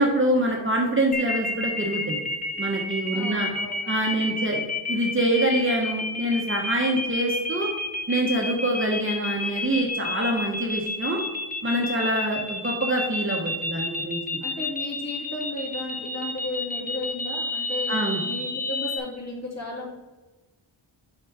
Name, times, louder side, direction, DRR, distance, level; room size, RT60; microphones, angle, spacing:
voice 1, 0.0-2.2 2.6-3.5 3.9-4.6 4.9-7.7 8.1-11.2 11.6-14.4 17.9-18.2, right 1 dB, 25° right, -1 dB, 1.0 m, -25 dB
sound 1, 1.1-19.0, left 2 dB, 15° left, 1.0 m, -30 dB
voice 2, 3.1-4.0 11.9-12.2 14.4-19.9, left 2 dB, 35° left, -3 dB, 2.4 m, -34 dB
7.1 x 4.1 x 4.7 m, 1.2 s
wide cardioid pair, 65°, 48 cm